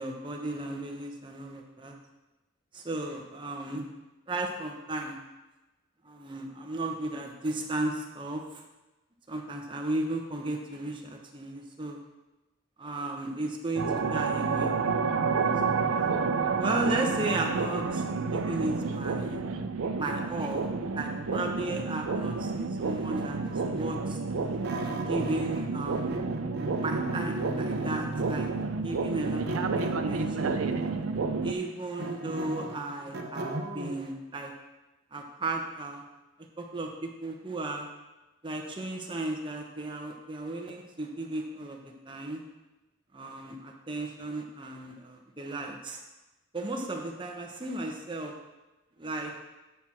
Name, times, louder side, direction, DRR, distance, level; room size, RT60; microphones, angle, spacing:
voice 1, 0.0-1.9 2.7-3.9 4.3-5.2 6.0-8.6 9.3-12.0 12.8-14.7 15.4-16.1 16.6-19.4 20.0-20.7 20.9-24.2 24.9-26.1 26.8-28.5 28.8-30.6 31.4-34.5 35.1-36.0 36.6-37.9 38.4-42.4 43.1-46.0 46.5-48.3 49.0-49.3, right 2 dB, 25° right, 1 dB, 0.9 m, -35 dB
sound 1, 13.7-31.5, right 4 dB, 80° right, 0.5 m, -30 dB
sound 2, 22.8-25.7 25.9-28.6 29.5-31.0 31.5-34.0, right 1 dB, 50° right, 0.8 m, -38 dB
8.5 x 5.9 x 4.3 m, 1.1 s
head